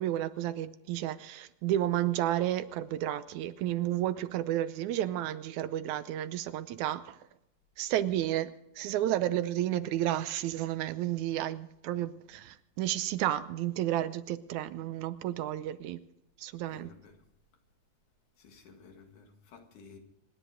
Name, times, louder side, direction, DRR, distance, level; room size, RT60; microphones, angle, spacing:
voice 1, 0.0-7.2 7.8-16.0 16.4-16.9, right 13 dB, 80° right, 2.1 m, -32 dB
voice 2, 16.7-17.2 18.4-20.0, left 5 dB, 90° left, 3.4 m, -54 dB
26.5 x 10.5 x 5.0 m
omnidirectional pair, 3.4 m